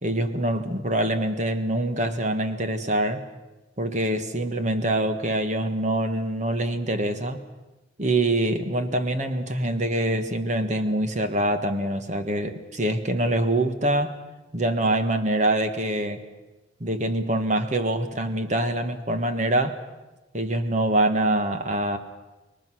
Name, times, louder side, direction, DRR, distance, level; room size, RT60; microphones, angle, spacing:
voice 1, 0.0-3.2 3.8-7.4 8.0-14.2 14.5-16.2 16.8-19.8 20.3-22.0, right 1 dB, 35° right, 8 dB, 1.5 m, -25 dB
26.0 x 21.5 x 6.3 m, 1.1 s
head